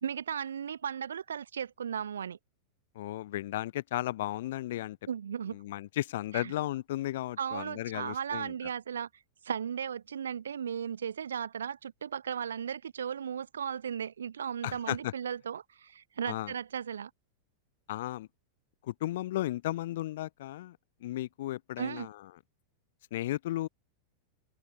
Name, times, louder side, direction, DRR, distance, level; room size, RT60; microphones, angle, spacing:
voice 1, 0.0-2.4 5.1-5.6 6.3-6.5 7.4-9.1 9.4-17.1 21.8-22.1, right 8 dB, 65° right, 0.7 m, -36 dB
voice 2, 2.9-5.0 5.5-8.5 14.6-15.1 16.3-16.5 17.9-18.3 18.8-22.2 23.1-23.7, left 15 dB, 55° left, 0.5 m, -35 dB
figure-of-eight pair, 90°, 0 cm